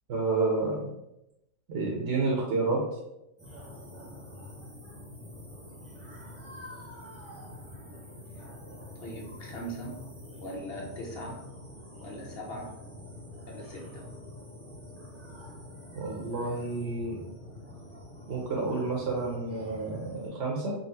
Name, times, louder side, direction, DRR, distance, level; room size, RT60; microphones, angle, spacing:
voice 1, 0.1-0.8 1.7-2.8 16.0-17.2 18.3-20.8, right 3 dB, 65° right, -2 dB, 0.9 m, -29 dB
sound 1, 3.4-20.3, left 1 dB, 15° right, 0.8 m, -46 dB
voice 2, 8.9-10.0 10.4-11.5 12.0-12.8 13.4-14.1, equal, 55° left, -2 dB, 1.0 m, -40 dB
3.9 x 2.0 x 3.9 m, 0.87 s
omnidirectional pair, 1.3 m